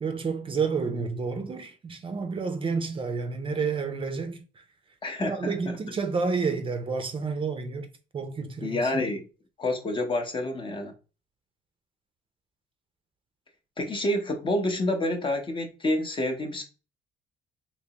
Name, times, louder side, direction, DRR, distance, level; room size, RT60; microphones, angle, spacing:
voice 1, 0.0-4.4 5.2-7.9 8.1-9.0, right 4 dB, 30° right, 0.5 m, -30 dB
voice 2, 5.0-5.8 8.6-9.3 9.6-10.9 13.8-16.6, left 1 dB, 30° left, 0.7 m, -28 dB
3.3 x 2.9 x 2.8 m
cardioid pair, 110°, 17 cm